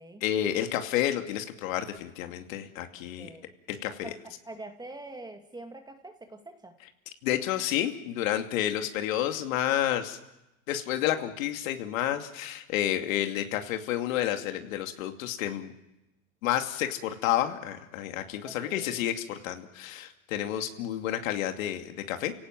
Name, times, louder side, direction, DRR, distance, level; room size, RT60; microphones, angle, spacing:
voice 1, 0.2-3.3 3.7-4.1 7.2-10.2 10.7-15.7 16.4-22.3, left 12 dB, 75° left, 6 dB, 2.5 m, -30 dB
voice 2, 3.0-3.5 3.9-4.2 4.4-6.7 18.4-19.1, right 2 dB, 10° right, 6 dB, 2.2 m, -45 dB
29.5 x 17.5 x 7.6 m, 0.94 s
supercardioid pair, 125°, 41 cm